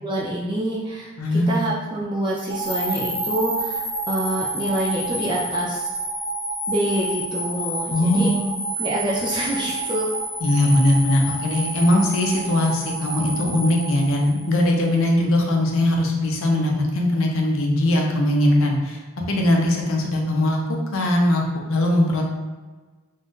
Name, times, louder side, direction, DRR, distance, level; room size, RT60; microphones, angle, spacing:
voice 1, 0.0-6.0 6.7-8.3 8.8-10.1, right 1 dB, 20° right, -5 dB, 0.3 m, -26 dB
voice 2, 1.2-1.7 7.9-8.6 10.4-19.0 19.3-21.4 21.7-22.2, left 1 dB, 60° left, 0 dB, 0.5 m, -20 dB
sound 1, 2.5-14.7, right 1 dB, 5° left, 1.0 m, -29 dB
2.6 x 2.2 x 3.5 m, 1.3 s
head